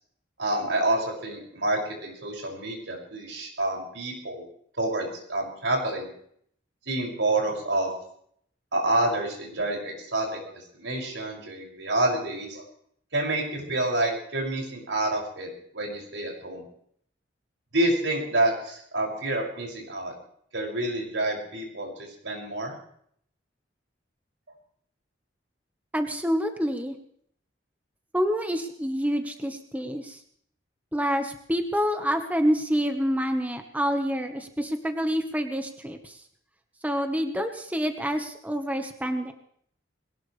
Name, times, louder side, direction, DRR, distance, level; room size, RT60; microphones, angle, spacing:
voice 1, 0.4-4.5 4.8-6.1 6.9-7.9 8.7-12.6 13.1-15.5 15.7-16.6 17.7-20.1 20.5-21.9 22.2-22.8, right 1 dB, 85° right, 0 dB, 6.6 m, -28 dB
voice 2, 25.9-27.0 28.1-30.2 30.9-36.2 36.8-39.3, equal, 10° right, 5 dB, 1.3 m, -27 dB
21.5 x 19.0 x 3.4 m, 0.66 s
head